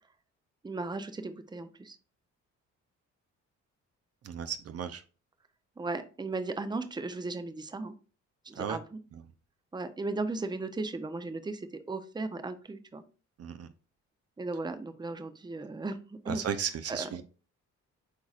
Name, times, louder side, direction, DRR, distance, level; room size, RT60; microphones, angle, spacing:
voice 1, 0.6-2.0 5.8-7.9 8.4-9.0 9.7-13.0 14.4-16.0 16.3-16.4 16.9-17.1, right 3 dB, 15° right, 10 dB, 0.7 m, -36 dB
voice 2, 4.2-5.0 8.6-8.8 9.1-9.2 13.4-13.7 16.3-17.2, right 8 dB, 55° right, 10 dB, 0.7 m, -35 dB
8.2 x 4.7 x 2.5 m, 0.36 s
cardioid pair, 90°, 30 cm